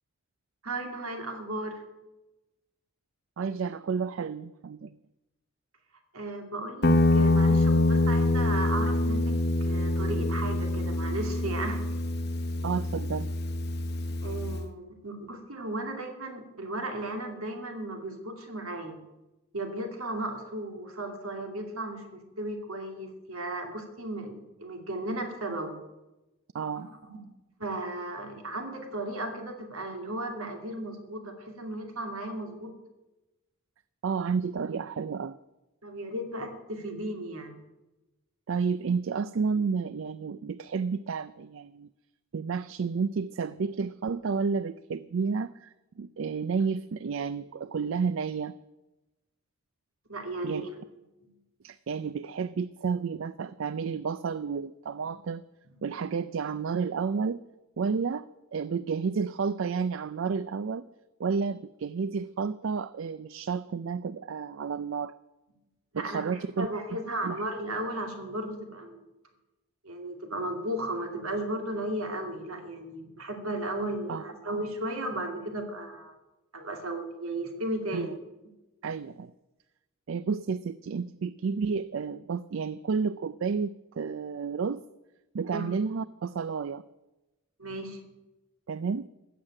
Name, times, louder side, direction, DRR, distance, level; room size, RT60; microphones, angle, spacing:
voice 1, 0.6-1.8 6.1-9.4 9.6-11.8 14.2-19.0 19.5-25.8 26.7-27.2 27.6-32.7 35.8-37.6 50.1-50.7 51.2-51.3 54.9-55.1 55.7-55.8 65.9-69.0 69.8-76.2 76.5-78.1 85.5-85.7 87.6-88.0, right 1 dB, 80° right, 4 dB, 2.6 m, -35 dB
voice 2, 3.4-5.0 12.6-13.3 26.5-26.9 34.0-35.4 38.5-41.9 42.3-48.6 50.4-50.6 51.6-55.4 55.8-57.4 57.8-58.2 58.5-60.8 61.2-65.1 65.9-66.7 67.2-67.4 74.1-74.2 77.9-78.2 78.8-79.3 80.1-84.8 85.3-86.8 88.7-89.1, right 5 dB, 65° right, 16 dB, 0.4 m, -31 dB
Guitar, 6.8-14.7, left 2 dB, 50° left, 0.8 m, -25 dB
15.0 x 7.4 x 8.8 m, 1.0 s
head